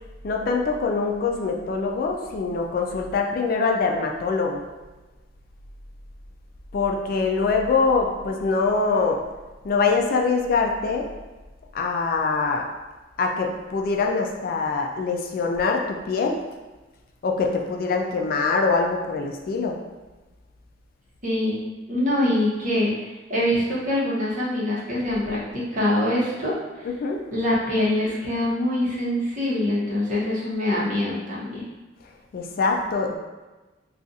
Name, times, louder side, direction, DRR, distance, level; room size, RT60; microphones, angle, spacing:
voice 1, 0.2-4.6 6.7-9.2 9.6-11.1 11.7-12.7 13.2-16.4 17.2-19.8 26.8-27.2 32.3-33.2, left 4 dB, 50° left, 2 dB, 0.3 m, -24 dB
voice 2, 21.2-21.6 21.9-26.5 27.3-31.6, left 1 dB, 45° right, -7 dB, 0.9 m, -24 dB
2.4 x 2.4 x 3.9 m, 1.2 s
head